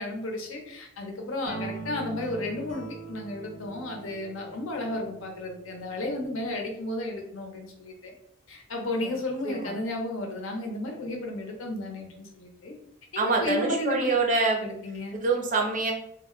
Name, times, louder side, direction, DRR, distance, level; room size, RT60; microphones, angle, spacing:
voice 1, 0.0-8.1 8.5-12.7 13.1-14.1 14.6-15.2, left 2 dB, 80° left, 2 dB, 0.7 m, -33 dB
sound 1, 1.5-5.9, right 3 dB, 40° left, 0.7 m, -41 dB
voice 2, 13.2-14.6 15.2-15.9, right 3 dB, 40° right, 1 dB, 0.5 m, -25 dB
2.3 x 2.1 x 3.7 m, 0.72 s
head